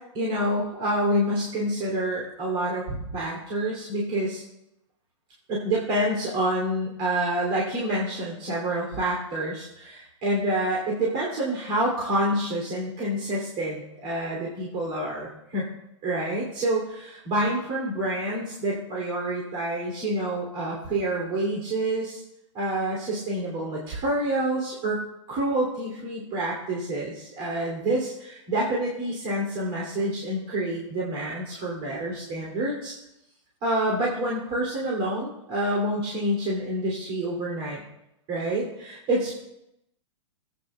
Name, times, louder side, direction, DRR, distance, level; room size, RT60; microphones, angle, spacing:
voice 1, 0.1-4.4 5.5-15.7 16.0-22.2 22.5-25.0 25.3-32.9 33.6-37.8 38.3-39.3, right 1 dB, 40° right, -4 dB, 2.8 m, -27 dB
16.0 x 8.8 x 2.3 m, 0.83 s
hypercardioid pair, 135°, 16 cm